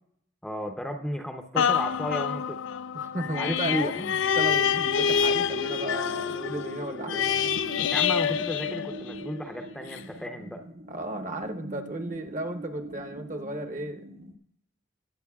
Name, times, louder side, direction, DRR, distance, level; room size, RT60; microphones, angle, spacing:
voice 1, 0.4-2.6 3.3-3.9 7.9-10.7, equal, 5° left, 4 dB, 0.6 m, -33 dB
sound 1, 1.6-9.4 9.9-10.0, left 7 dB, 65° left, 0.3 m, -27 dB
voice 2, 2.9-7.6 10.9-14.0, right 1 dB, 35° right, 7 dB, 0.9 m, -34 dB
sound 2, 4.2-14.4, right 1 dB, 85° right, 1.7 m, -42 dB
20.5 x 8.7 x 2.3 m, 0.72 s
head